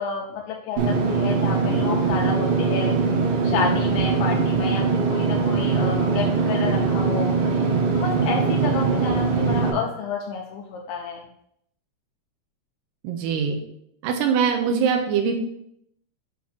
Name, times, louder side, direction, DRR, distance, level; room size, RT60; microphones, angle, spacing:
voice 1, 0.0-3.2 3.4-11.3, left 5 dB, 80° left, -1 dB, 2.0 m, -30 dB
Engine / Mechanisms, 0.8-9.7, right 4 dB, 70° right, 2.3 m, -22 dB
voice 2, 13.0-13.6 14.0-15.3, right 6 dB, 85° right, 4 dB, 2.8 m, -22 dB
7.5 x 2.9 x 5.9 m, 0.74 s
omnidirectional pair, 4.7 m